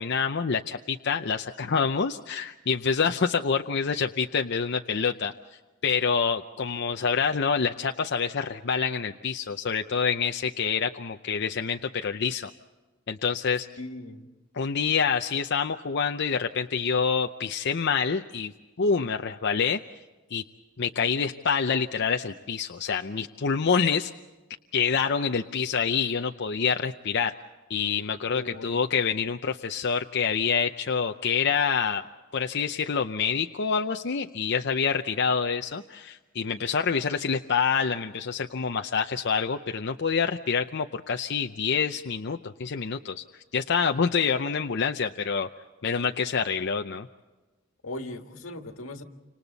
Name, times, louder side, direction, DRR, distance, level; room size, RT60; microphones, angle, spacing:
voice 1, 0.0-5.3 5.8-12.5 13.1-13.7 14.5-18.5 18.8-19.8 20.3-20.4 20.8-24.1 24.7-27.3 27.7-32.0 32.3-43.2 43.5-45.5 45.8-47.1, left 6 dB, 60° left, 5 dB, 0.6 m, -27 dB
voice 2, 13.8-14.3 28.3-28.7 47.8-49.0, left 1 dB, 90° left, 5 dB, 1.9 m, -38 dB
29.5 x 26.5 x 4.1 m, 1.2 s
head